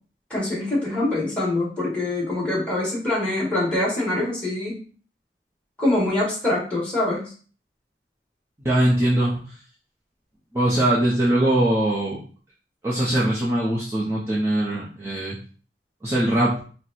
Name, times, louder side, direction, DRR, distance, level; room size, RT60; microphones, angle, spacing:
voice 1, 0.3-4.8 5.8-7.3, left 2 dB, 5° left, -7 dB, 1.9 m, -24 dB
voice 2, 8.6-9.6 10.5-12.2 12.8-15.4 16.0-16.6, right 1 dB, 15° right, -8 dB, 0.8 m, -21 dB
4.5 x 2.3 x 4.2 m, 0.41 s
head